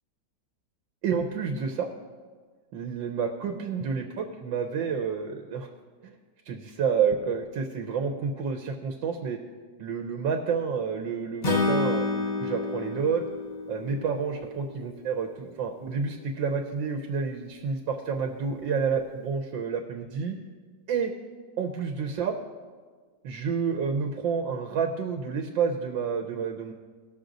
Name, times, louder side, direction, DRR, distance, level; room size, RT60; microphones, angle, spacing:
voice 1, 1.0-1.9 2.7-5.7 6.5-9.4 9.8-13.2 13.7-20.4 20.9-21.1 21.6-22.4 23.2-26.7, right 6 dB, 85° right, 4 dB, 1.5 m, -29 dB
Acoustic guitar / Strum, 11.4-14.7, left 3 dB, 45° left, 0.5 m, -29 dB
18.5 x 6.6 x 3.9 m, 1.5 s
omnidirectional pair, 2.0 m